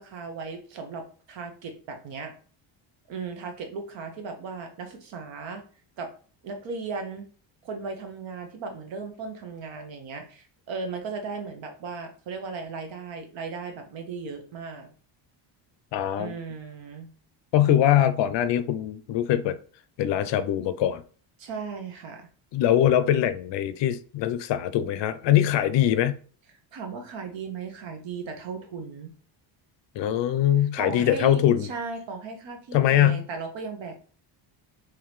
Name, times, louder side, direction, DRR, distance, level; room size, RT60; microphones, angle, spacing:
voice 1, 0.0-2.3 3.1-5.6 6.0-6.1 6.4-7.3 7.6-14.9 16.1-17.1 21.4-22.3 26.7-29.1 30.6-33.9, right 4 dB, 65° right, 1.1 m, -36 dB
voice 2, 15.9-16.3 17.5-19.6 20.0-21.0 22.5-26.2 30.0-31.7 32.7-33.2, left 11 dB, 65° left, 0.5 m, -22 dB
3.8 x 3.0 x 3.1 m
cardioid pair, 140°, 48 cm